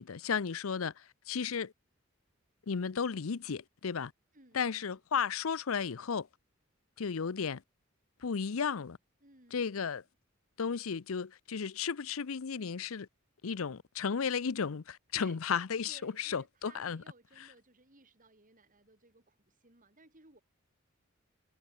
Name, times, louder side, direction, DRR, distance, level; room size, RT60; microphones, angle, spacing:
voice 1, 0.0-1.7 2.7-4.1 4.5-6.3 7.0-7.6 8.2-9.0 9.5-10.0 10.6-13.1 13.4-17.0 17.4-17.5, left 6 dB, 80° left, 0.6 m, -34 dB
voice 2, 4.3-4.9 9.2-9.9 15.1-15.4 15.9-20.4, right 2 dB, 40° right, 6.5 m, -60 dB
head